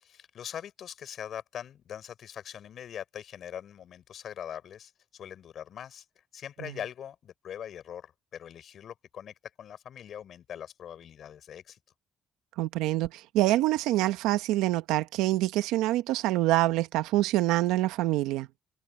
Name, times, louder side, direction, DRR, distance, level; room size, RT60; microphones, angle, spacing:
voice 1, 0.1-6.1 6.3-11.8, left 9 dB, 60° left, 7.0 m, -42 dB
voice 2, 12.6-18.5, right 16 dB, 90° right, 1.2 m, -26 dB
cardioid pair, 80°, 0 cm